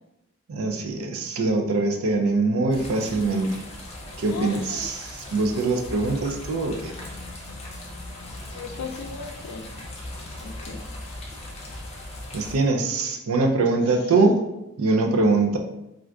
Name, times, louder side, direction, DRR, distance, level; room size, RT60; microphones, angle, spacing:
voice 1, 0.5-3.6 4.2-6.9 12.3-14.4 14.8-15.6, right 3 dB, 70° right, 3 dB, 0.4 m, -23 dB
sound 1, 2.7-12.6, left 1 dB, 30° left, 0.5 m, -38 dB
voice 2, 4.3-5.0 8.5-9.6 10.4-10.8 14.2-14.3, left 5 dB, 90° left, 4 dB, 0.4 m, -36 dB
2.5 x 2.4 x 3.3 m, 0.91 s
head